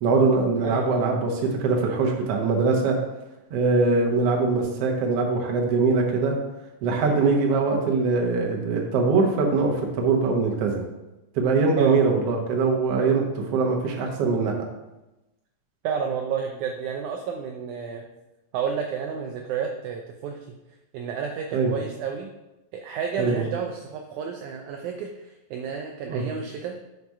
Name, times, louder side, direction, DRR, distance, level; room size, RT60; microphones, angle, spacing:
voice 1, 0.0-3.0 3.5-6.3 6.8-10.8 11.3-14.5 21.5-21.7 23.2-23.4 26.1-26.3, right 4 dB, 65° right, 0 dB, 1.6 m, -22 dB
voice 2, 0.6-1.0 7.0-7.3 11.8-12.0 15.8-18.0 18.5-20.4 20.9-22.3 22.7-26.7, right 6 dB, 85° right, 3 dB, 1.7 m, -31 dB
5.8 x 4.7 x 5.3 m, 1.0 s
omnidirectional pair, 4.0 m